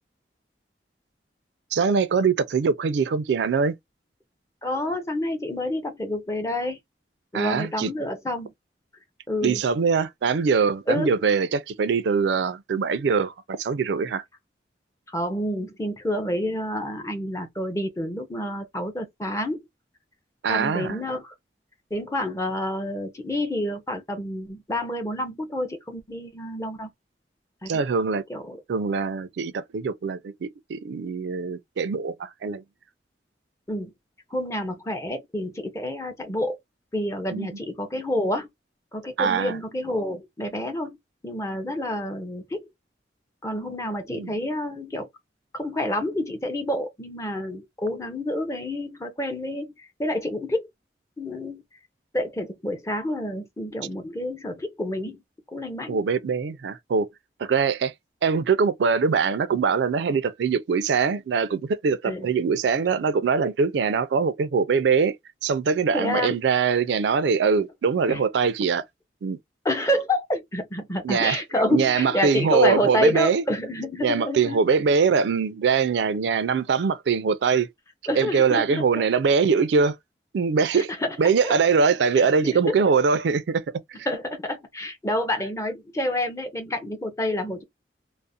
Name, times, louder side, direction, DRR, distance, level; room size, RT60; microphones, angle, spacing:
voice 1, 1.7-3.8 7.3-7.9 9.4-14.2 20.4-21.0 27.7-28.2 28.7-32.6 37.3-37.5 39.2-39.6 44.1-44.3 55.9-57.1 57.4-57.9 58.2-65.1 65.4-68.8 69.2-69.4 71.0-71.4 71.7-73.4 74.0-77.7 78.2-80.0 80.3-80.9 81.2-83.6, right 5 dB, 80° right, 0.4 m, -22 dB
voice 2, 4.6-6.8 7.3-8.5 9.3-9.6 10.9-11.1 15.1-19.6 20.5-21.3 21.9-26.9 27.6-27.8 28.3-28.6 33.7-33.9 34.3-36.6 36.9-38.5 38.9-41.0 41.2-42.7 43.4-45.1 45.5-50.7 51.2-51.6 52.1-55.2 55.5-56.0 62.0-62.3 65.9-66.4 68.1-68.2 69.6-74.6 78.1-79.0 80.7-81.2 81.4-81.5 82.2-82.8 84.1-87.6, left 1 dB, 15° left, 0.5 m, -28 dB
2.4 x 2.0 x 2.6 m
head